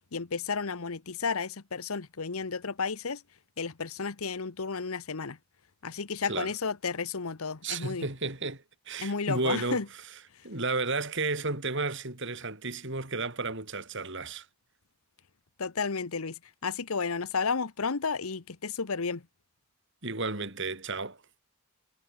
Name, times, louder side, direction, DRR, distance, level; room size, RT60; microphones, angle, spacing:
voice 1, 0.1-3.2 3.6-5.4 5.8-8.1 9.0-9.9 15.6-19.2, left 5 dB, 75° left, 1.0 m, -32 dB
voice 2, 7.6-9.8 10.4-14.5 20.0-21.2, right 3 dB, 55° right, 4.5 m, -32 dB
head